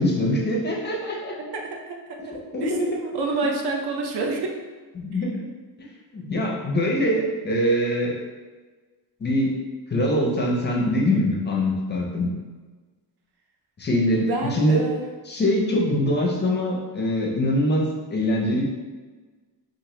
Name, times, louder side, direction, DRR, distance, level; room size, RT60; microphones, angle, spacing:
voice 1, 0.0-1.3 2.3-2.9 5.0-5.5 6.1-8.2 9.2-9.6 9.9-12.3 13.8-14.8 15.2-18.6, left 1 dB, 25° left, -2 dB, 0.4 m, -23 dB
voice 2, 1.4-4.5 14.1-15.0, right 3 dB, 65° right, 1 dB, 0.5 m, -29 dB
2.8 x 2.6 x 3.0 m, 1.3 s
wide cardioid pair, 180°, 42 cm